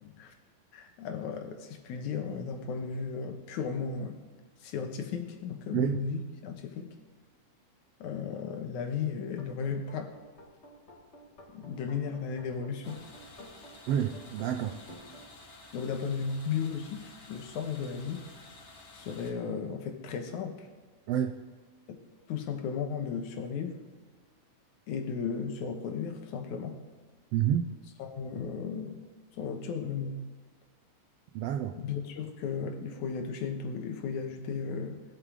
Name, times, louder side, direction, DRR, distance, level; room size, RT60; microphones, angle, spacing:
voice 1, 0.0-0.3 0.7-4.2 4.6-7.0 8.0-10.1 11.5-13.0 15.7-18.3 18.9-20.7 21.9-22.0 22.3-23.8 24.9-26.8 28.0-29.0 29.4-30.3 31.8-35.0, left 6 dB, 80° left, 2.5 m, -35 dB
sound 1, 9.3-15.2, equal, 25° left, 1.8 m, -51 dB
sound 2, 12.8-19.3, left 2 dB, 55° left, 2.4 m, -52 dB
voice 2, 13.9-14.7 21.1-21.4 27.3-27.6 31.3-31.7, right 10 dB, 85° right, 1.4 m, -28 dB
20.0 x 8.1 x 3.8 m
omnidirectional pair, 3.5 m